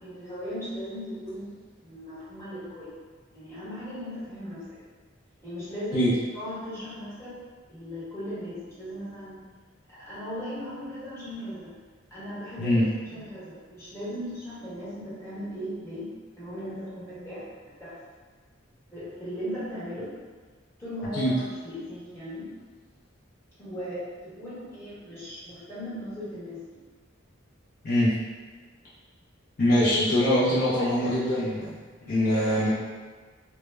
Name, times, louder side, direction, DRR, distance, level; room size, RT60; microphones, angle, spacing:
voice 1, 0.0-1.5 1.8-2.9 3.3-4.6 5.4-7.4 7.7-9.3 9.9-11.7 12.1-16.1 16.4-17.9 18.9-20.1 20.8-22.4 23.6-26.6 29.8-30.0 30.3-31.1 32.0-32.6, equal, 15° left, -12 dB, 1.1 m, -37 dB
voice 2, 29.6-31.8 32.1-32.7, left 1 dB, 50° left, -9 dB, 0.5 m, -23 dB
2.1 x 2.0 x 3.2 m, 1.4 s
head